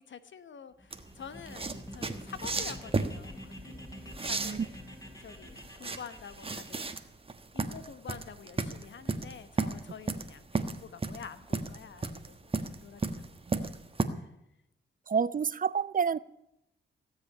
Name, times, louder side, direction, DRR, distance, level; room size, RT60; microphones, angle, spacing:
voice 1, 0.0-4.7 5.2-6.9 7.5-13.4 13.7-13.8 14.1-14.3, left 7 dB, 70° left, 12 dB, 1.2 m, -48 dB
sound 1, 0.8-6.9, left 1 dB, 15° left, 4.2 m, -47 dB
sound 2, 0.9-14.1, right 3 dB, 30° right, 1.3 m, -34 dB
voice 2, 4.3-4.7 13.5-13.7 15.1-16.2, right 6 dB, 45° right, 18 dB, 0.6 m, -29 dB
17.0 x 7.8 x 9.6 m, 0.83 s
cardioid pair, 80°, 20 cm